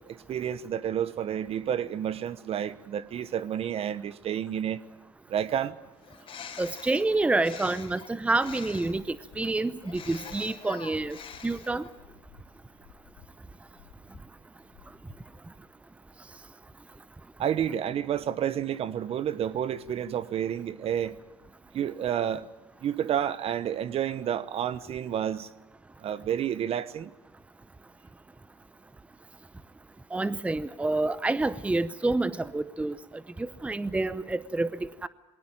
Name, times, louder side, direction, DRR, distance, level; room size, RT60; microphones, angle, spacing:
voice 1, 0.0-4.8 5.3-5.8 17.4-21.2 21.7-22.5 22.8-25.5 26.0-27.1, right 9 dB, 45° right, 1.0 m, -30 dB
Bird, 6.0-9.1 9.8-12.0, left 7 dB, 40° left, 3.7 m, -45 dB
voice 2, 6.6-11.2 11.4-11.8 30.1-33.0 33.4-34.7 35.0-35.1, right 2 dB, 10° right, 0.8 m, -28 dB
sound 1, 8.3-15.7, left 8 dB, 90° left, 2.4 m, -57 dB
22.0 x 18.5 x 9.0 m
supercardioid pair, 95°, 13 cm